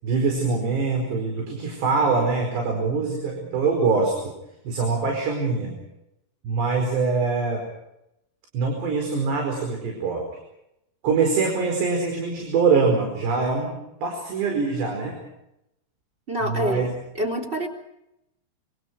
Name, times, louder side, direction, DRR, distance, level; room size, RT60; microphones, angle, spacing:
voice 1, 0.0-4.3 4.7-5.8 6.4-7.6 8.5-10.3 11.0-15.2 16.4-16.9, right 4 dB, 75° right, 2 dB, 7.0 m, -24 dB
voice 2, 16.3-17.7, equal, 15° right, 5 dB, 3.4 m, -27 dB
26.5 x 26.5 x 4.7 m, 0.84 s
omnidirectional pair, 4.9 m